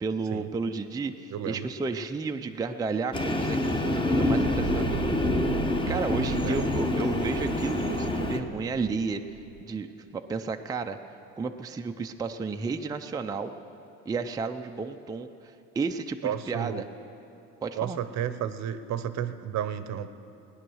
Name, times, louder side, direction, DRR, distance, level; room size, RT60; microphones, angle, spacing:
voice 1, 0.0-5.4 5.9-11.0 11.4-13.5 14.1-16.9 17.6-18.0, right 4 dB, 10° right, 5 dB, 0.4 m, -32 dB
voice 2, 1.3-1.7 6.4-6.6 16.2-16.8 17.8-20.1, right 9 dB, 55° right, 12 dB, 0.8 m, -32 dB
Train, 3.1-8.4, left 2 dB, 15° left, 1.0 m, -27 dB
sound 1, 4.6-9.6, right 10 dB, 90° right, 0.7 m, -37 dB
17.0 x 10.0 x 6.3 m, 2.8 s
cardioid pair, 110°, 34 cm